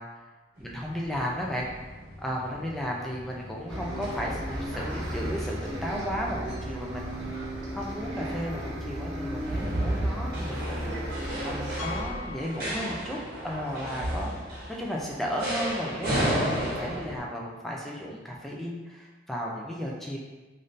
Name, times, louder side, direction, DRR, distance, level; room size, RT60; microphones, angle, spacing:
voice 1, 0.6-1.7 2.2-7.3 7.7-10.9 11.4-13.2 13.4-20.2, equal, ahead, -3 dB, 0.3 m, -34 dB
sound 1, 0.6-17.2, right 1 dB, 50° right, 1.0 m, -35 dB
Bus, 3.7-12.0, right 1 dB, 75° right, 0.8 m, -35 dB
Piano, 11.8-13.4 13.7-13.8 14.4-14.5 14.7-14.8 16.9-17.0, left 5 dB, 80° left, 0.3 m, -42 dB
3.5 x 2.6 x 2.5 m, 1.2 s
head